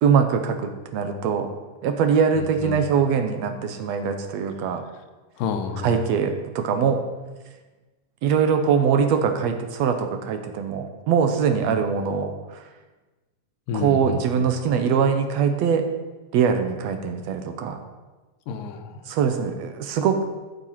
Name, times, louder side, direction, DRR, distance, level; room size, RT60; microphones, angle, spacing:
voice 1, 0.0-1.5 1.8-4.8 5.8-7.0 8.2-12.6 13.7-15.9 16.3-17.8 19.1-20.2, right 6 dB, 70° right, 7 dB, 1.7 m, -22 dB
voice 2, 2.4-2.8 5.4-6.0 13.7-14.4 18.5-19.0, left 6 dB, 85° left, 6 dB, 2.5 m, -30 dB
14.0 x 6.7 x 5.7 m, 1.2 s
omnidirectional pair, 3.8 m